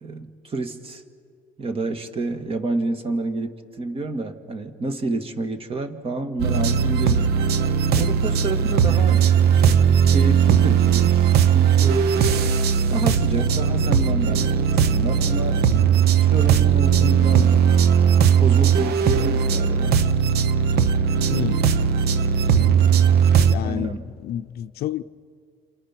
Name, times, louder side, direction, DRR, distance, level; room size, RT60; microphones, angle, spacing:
voice 1, 0.0-1.0 1.6-7.3 7.9-9.3 9.6-12.2 12.9-15.6 16.2-17.9 18.4-20.0 23.6-24.1, right 2 dB, 35° right, 2.0 m, -29 dB
sound 1, 6.4-23.5, right 7 dB, 70° right, 1.0 m, -18 dB
voice 2, 21.3-21.6 23.5-24.0 24.2-25.0, left 11 dB, 70° left, 0.6 m, -29 dB
28.5 x 27.0 x 6.0 m
cardioid pair, 110°, 17 cm